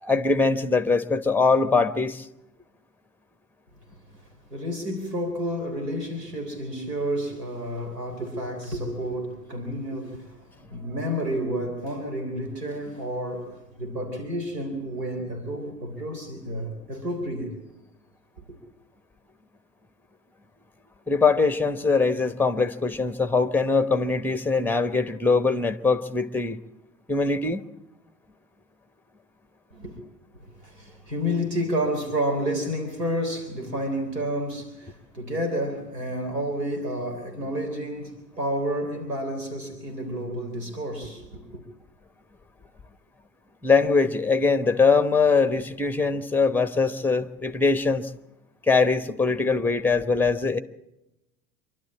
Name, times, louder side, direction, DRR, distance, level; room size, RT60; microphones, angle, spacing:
voice 1, 0.0-2.3 21.1-26.6 27.1-27.6 43.6-48.1 48.7-50.6, left 4 dB, 5° left, 1.0 m, -22 dB
voice 2, 4.5-17.6 29.7-30.0 30.3-41.6, equal, 80° right, 3.8 m, -30 dB
26.0 x 12.0 x 8.6 m
figure-of-eight pair, 80°, 48 cm